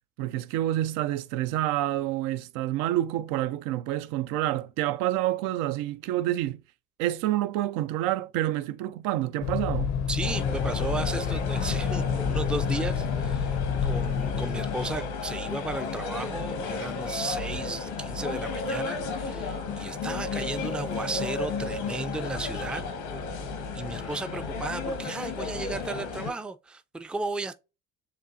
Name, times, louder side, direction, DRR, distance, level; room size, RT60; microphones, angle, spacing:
voice 1, 0.2-6.6 7.0-9.9, right 14 dB, 75° right, 0.5 m, -28 dB
sound 1, 9.4-15.0, left 7 dB, 55° left, 0.6 m, -29 dB
voice 2, 10.1-22.8 23.7-27.5, right 3 dB, 5° right, 0.4 m, -35 dB
sound 2, 10.2-26.3, left 4 dB, 90° left, 1.4 m, -33 dB
7.2 x 2.5 x 2.6 m
supercardioid pair, 80°, 33 cm